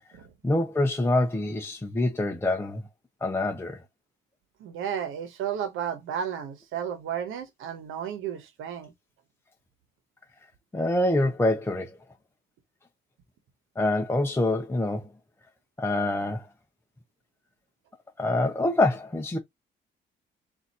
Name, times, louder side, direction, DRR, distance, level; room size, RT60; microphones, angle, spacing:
voice 1, 0.4-2.8 3.2-3.8 10.7-11.9 13.8-15.1 15.8-16.5 18.2-19.4, left 2 dB, 10° left, 0.7 m, -25 dB
voice 2, 4.6-8.9, right 8 dB, 85° right, 1.1 m, -33 dB
4.0 x 2.7 x 4.2 m
cardioid pair, 90°, 20 cm